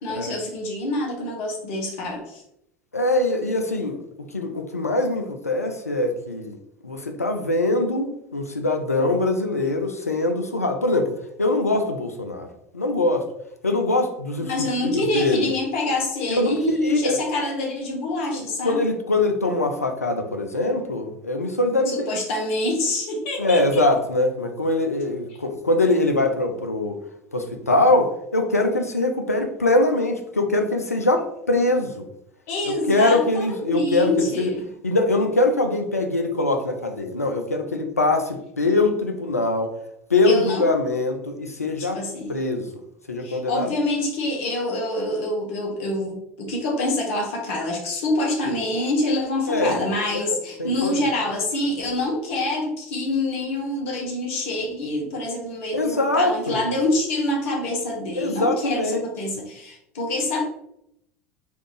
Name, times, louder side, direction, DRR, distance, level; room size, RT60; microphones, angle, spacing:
voice 1, 0.0-2.4 14.4-18.8 21.9-23.8 29.3-29.5 32.5-34.7 40.2-40.6 41.8-42.3 43.2-60.4, left 1 dB, 60° left, 0 dB, 1.0 m, -26 dB
voice 2, 2.9-4.0 4.3-6.6 6.8-12.5 12.7-13.3 13.6-14.5 14.8-15.5 16.3-17.2 18.3-22.1 23.4-27.0 27.3-32.1 32.6-34.5 34.8-39.7 40.1-42.0 42.3-42.7 43.1-43.7 49.5-49.8 50.1-51.0 55.7-56.6 58.2-59.0, left 2 dB, 90° left, 5 dB, 0.4 m, -23 dB
3.3 x 2.5 x 3.1 m, 0.79 s
figure-of-eight pair, 70°, 8 cm